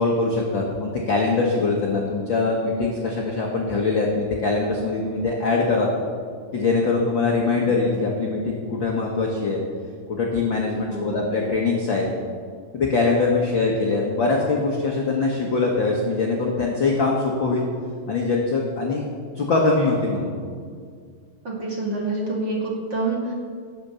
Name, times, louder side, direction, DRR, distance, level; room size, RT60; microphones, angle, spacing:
voice 1, 0.0-5.9 6.5-9.6 10.1-12.1 12.7-17.6 18.1-19.1 19.3-20.3, left 3 dB, 55° left, -1 dB, 1.3 m, -22 dB
voice 2, 10.9-11.2 21.4-23.3, right 2 dB, 35° right, -3 dB, 2.5 m, -27 dB
17.5 x 6.9 x 6.9 m, 2.1 s
omnidirectional pair, 4.0 m